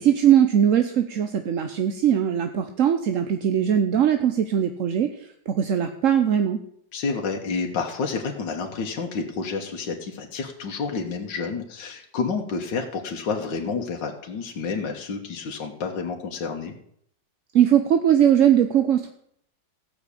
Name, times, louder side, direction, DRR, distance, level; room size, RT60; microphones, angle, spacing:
voice 1, 0.0-5.1 5.5-6.6 17.5-19.1, right 9 dB, 55° right, 7 dB, 1.0 m, -20 dB
voice 2, 6.9-16.7, left 4 dB, 75° left, 2 dB, 2.0 m, -29 dB
15.0 x 6.2 x 8.4 m, 0.69 s
omnidirectional pair, 2.0 m